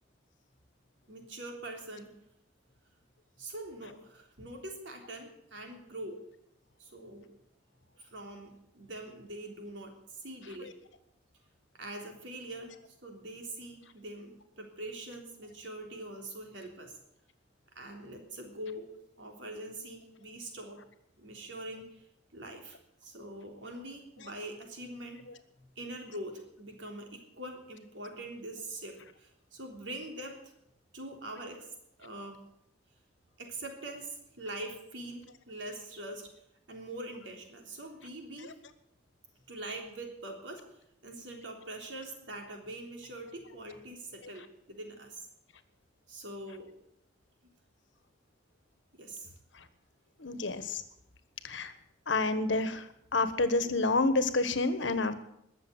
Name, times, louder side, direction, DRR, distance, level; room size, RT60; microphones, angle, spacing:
voice 1, 1.1-2.1 3.4-6.2 6.8-7.3 8.0-10.7 11.8-12.8 13.0-17.0 17.8-18.9 19.2-20.8 21.2-21.9 22.3-22.8 23.0-25.3 25.6-30.5 30.9-31.7 32.0-32.4 33.4-36.3 36.7-38.5 39.5-40.6 41.0-45.2 46.1-46.7 49.0-49.3, right 1 dB, 80° right, 2 dB, 3.5 m, -43 dB
voice 2, 50.2-50.8 51.4-51.7 52.1-52.8 53.1-55.1, left 3 dB, 85° left, 12 dB, 1.3 m, -28 dB
21.0 x 7.2 x 8.0 m, 0.77 s
head